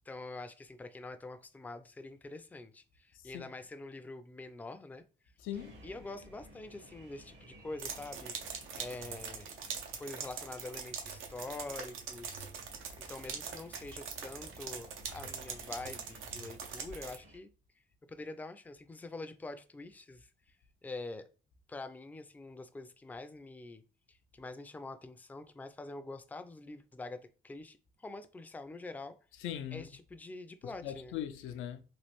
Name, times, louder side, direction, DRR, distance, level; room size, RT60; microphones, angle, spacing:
voice 1, 0.1-5.0 5.8-8.3 8.8-9.5 10.0-17.5 18.1-20.3 20.8-21.3 21.7-23.8 24.1-29.1 29.7-31.1, left 2 dB, 10° left, 0.3 m, -45 dB
voice 2, 5.4-5.8 29.4-29.9 30.6-31.8, left 10 dB, 85° left, 0.4 m, -40 dB
sound 1, 5.5-17.4, equal, 65° right, 1.1 m, -57 dB
sound 2, 7.8-17.2, right 6 dB, 90° right, 0.7 m, -43 dB
3.1 x 2.4 x 3.0 m
cardioid pair, 90°, 20 cm